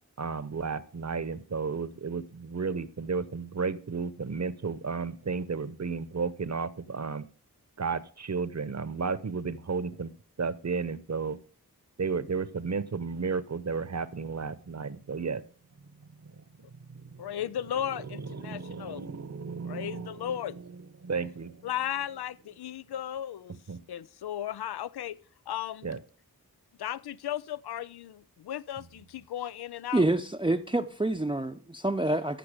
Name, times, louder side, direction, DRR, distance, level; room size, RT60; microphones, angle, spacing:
voice 1, 0.2-7.2 7.8-10.1 10.4-11.4 12.0-15.4 17.1-17.2 18.3-20.3 21.0-21.5 23.7-23.8 25.8-26.0, right 5 dB, 45° right, 0.9 m, -33 dB
voice 2, 17.2-19.1 19.7-20.6 21.6-23.6 23.9-25.2 25.5-25.9 26.8-30.0, left 10 dB, 85° left, 0.5 m, -35 dB
voice 3, 29.9-32.4, right 2 dB, 15° right, 0.7 m, -27 dB
14.5 x 5.9 x 5.0 m
cardioid pair, 40°, 38 cm